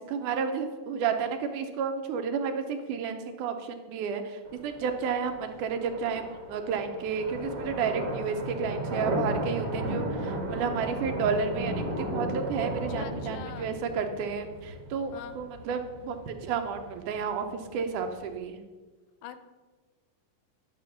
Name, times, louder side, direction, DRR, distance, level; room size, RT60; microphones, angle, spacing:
voice 1, 0.0-18.6, right 6 dB, 80° right, 6 dB, 2.2 m, -31 dB
sound 1, 4.5-18.4, right 1 dB, 50° right, 1.4 m, -35 dB
voice 2, 12.7-13.7 15.1-15.4 19.2-19.4, left 10 dB, 80° left, 10 dB, 2.2 m, -43 dB
10.5 x 6.7 x 5.7 m, 1.4 s
omnidirectional pair, 3.8 m